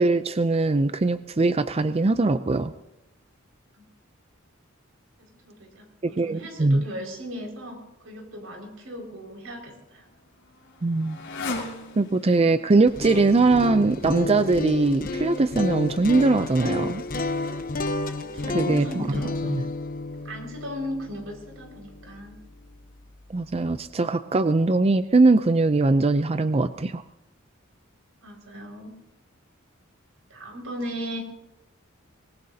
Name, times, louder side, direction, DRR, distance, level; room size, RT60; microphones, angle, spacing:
voice 1, 0.0-2.7 6.0-6.8 10.8-11.2 11.5-11.6 12.0-17.0 18.5-18.9 19.5-19.6 23.3-27.0, right 3 dB, 30° right, 11 dB, 0.5 m, -21 dB
voice 2, 5.2-10.0 18.2-19.6 20.2-22.4 28.2-29.0 30.3-31.2, equal, 85° right, 0 dB, 5.5 m, -37 dB
Motorcycle, 9.3-14.7, left 2 dB, 65° left, 5.5 m, -39 dB
sound 1, 12.8-22.8, left 2 dB, 45° left, 1.0 m, -31 dB
24.5 x 20.0 x 2.8 m, 0.90 s
head